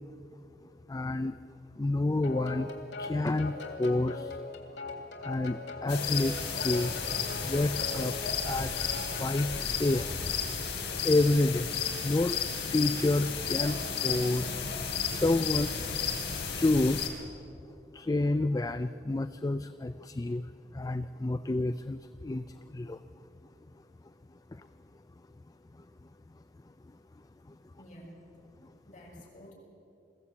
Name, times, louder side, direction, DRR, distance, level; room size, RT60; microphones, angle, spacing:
voice 1, 0.9-1.3 1.8-4.4 5.2-7.0 7.4-8.1 8.4-8.9 9.2-10.2 10.5-10.6 11.0-11.7 12.0-12.4 12.7-14.6 15.1-15.9 16.5-17.0 17.9-23.0 24.5-24.7 25.8-25.9 27.5-27.6, left 2 dB, 20° left, 11 dB, 0.4 m, -29 dB
sound 1, 2.2-9.6, left 3 dB, 90° left, 2.9 m, -41 dB
sound 2, 5.9-17.1, left 6 dB, 65° left, 3.0 m, -33 dB
voice 2, 27.8-28.2 28.8-29.5, equal, 45° left, -2 dB, 5.8 m, -51 dB
21.5 x 15.5 x 8.3 m, 2.7 s
head